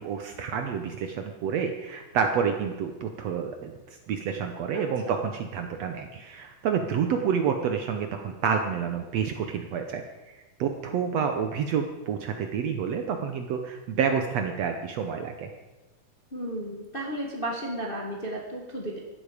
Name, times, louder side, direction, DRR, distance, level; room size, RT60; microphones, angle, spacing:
voice 1, 0.0-15.5, right 7 dB, 70° right, 5 dB, 1.7 m, -29 dB
voice 2, 16.3-19.0, right 1 dB, 25° left, -1 dB, 1.2 m, -33 dB
15.5 x 11.5 x 5.0 m, 1.1 s
omnidirectional pair, 3.7 m